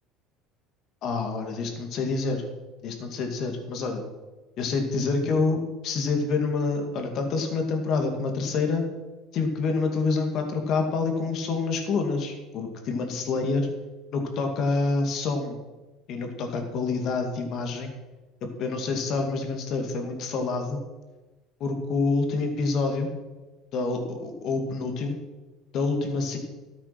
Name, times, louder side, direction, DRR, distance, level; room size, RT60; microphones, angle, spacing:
voice 1, 1.0-2.4 2.8-4.0 4.6-8.8 9.3-13.7 14.1-15.6 16.1-17.9 18.6-20.8 21.6-23.1 23.7-25.2 25.7-26.4, left 4 dB, 55° left, 4 dB, 2.6 m, -27 dB
13.0 x 8.8 x 6.1 m, 1.2 s
supercardioid pair, 115°, 0 cm